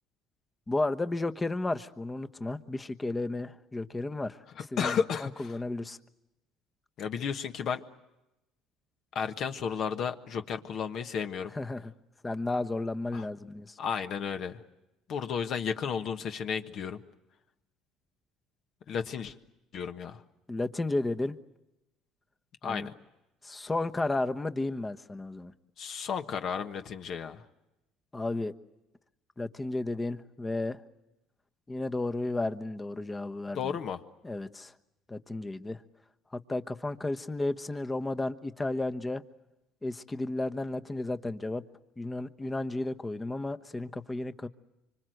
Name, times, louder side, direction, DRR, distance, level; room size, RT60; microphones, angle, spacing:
voice 1, 0.7-4.4 4.7-5.0 5.4-6.0 11.5-11.9 12.2-13.8 20.5-21.4 22.7-22.9 23.4-25.5 28.1-28.5 29.4-30.8 31.7-33.8 34.2-34.7 35.1-35.8 36.3-39.2 39.8-41.6 42.0-44.5, left 2 dB, 15° left, 9 dB, 1.1 m, -33 dB
voice 2, 4.6-5.6 7.0-7.8 9.1-11.5 13.1-13.3 13.8-14.6 15.1-17.0 18.9-19.3 19.7-20.2 22.6-22.9 25.8-27.4 33.5-34.0, left 7 dB, 55° left, 7 dB, 1.4 m, -33 dB
25.5 x 25.0 x 7.9 m, 0.94 s
supercardioid pair, 95°, 0 cm